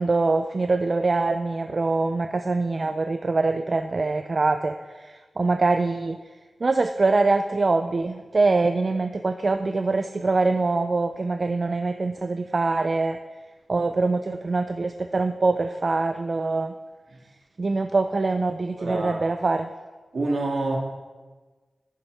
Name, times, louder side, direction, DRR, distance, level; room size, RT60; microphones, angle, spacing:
voice 1, 0.0-6.2 6.6-13.2 13.7-16.7 17.6-19.7, right 3 dB, 45° right, 8 dB, 0.3 m, -24 dB
voice 2, 18.8-19.2 20.1-20.8, right 2 dB, 70° right, -1 dB, 2.1 m, -26 dB
10.0 x 9.8 x 3.3 m, 1.3 s
wide cardioid pair, 70°, 0 cm